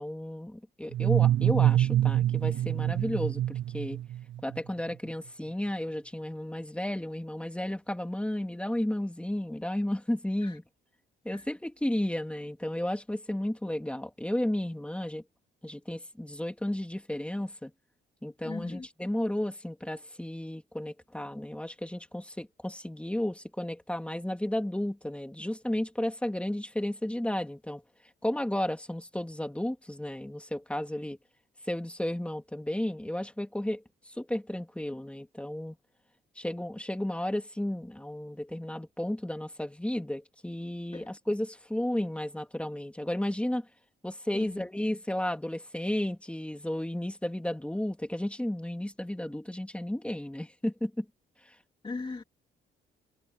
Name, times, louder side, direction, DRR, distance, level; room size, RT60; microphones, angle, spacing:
voice 1, 0.0-4.0 4.4-10.6 11.2-15.2 15.6-17.7 18.2-27.8 28.2-31.2 31.7-35.8 36.4-43.7 44.0-51.0, left 1 dB, 5° left, 2.9 m, -33 dB
sound 1, 0.9-4.6, right 12 dB, 75° right, 0.7 m, -26 dB
voice 2, 18.4-18.9 40.9-41.1 44.3-44.7 51.8-52.2, left 3 dB, 25° left, 2.4 m, -39 dB
cardioid pair, 90°, 20 cm